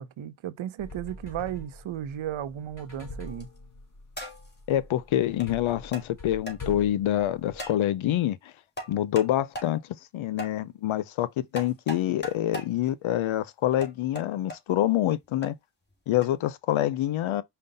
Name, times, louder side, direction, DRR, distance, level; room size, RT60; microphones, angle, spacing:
voice 1, 0.0-3.5, right 11 dB, 75° right, 0.7 m, -35 dB
sound 1, 0.8-7.7, left 2 dB, 40° left, 2.1 m, -44 dB
sound 2, 3.3-3.6 4.2-4.6 5.4-5.5 5.9-6.1 6.5-6.6 7.6-7.8 8.8-9.3 9.5-9.7 10.4-10.5 11.5-12.7 13.8-14.6 15.4-15.5 16.2-16.3, equal, 20° left, 2.3 m, -38 dB
voice 2, 4.7-8.4 8.9-9.8 10.1-15.5 16.1-17.4, left 12 dB, 80° left, 0.6 m, -26 dB
5.3 x 2.3 x 3.9 m
cardioid pair, 55°, 48 cm